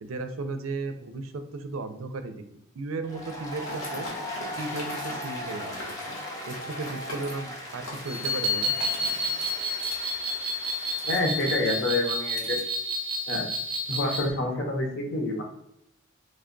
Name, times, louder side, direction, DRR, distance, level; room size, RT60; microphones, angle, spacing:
voice 1, 0.0-2.3 2.7-4.1 4.6-6.0 6.5-8.7, right 3 dB, 75° right, 8 dB, 0.4 m, -35 dB
Applause, 3.0-11.8, equal, 15° left, 0.5 m, -39 dB
sound 1, 3.6-12.6, left 1 dB, 85° left, 1.2 m, -42 dB
sound 2, 8.1-14.3, equal, 25° right, 0.6 m, -30 dB
voice 2, 11.1-12.6 13.3-13.4 13.9-15.4, left 2 dB, 55° left, 1 dB, 0.8 m, -27 dB
3.2 x 2.2 x 3.7 m, 0.78 s
head